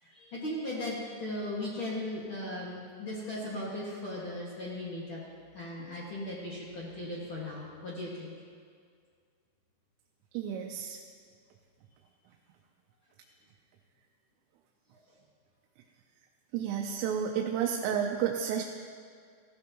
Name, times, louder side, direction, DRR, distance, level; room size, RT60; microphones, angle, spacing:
voice 1, 0.0-5.2 5.5-8.3 14.9-15.0, left 1 dB, 75° left, -6 dB, 1.1 m, -37 dB
voice 2, 10.3-11.0 16.5-18.6, right 8 dB, 85° right, 1 dB, 3.3 m, -31 dB
16.5 x 15.0 x 3.0 m, 2.1 s
omnidirectional pair, 5.6 m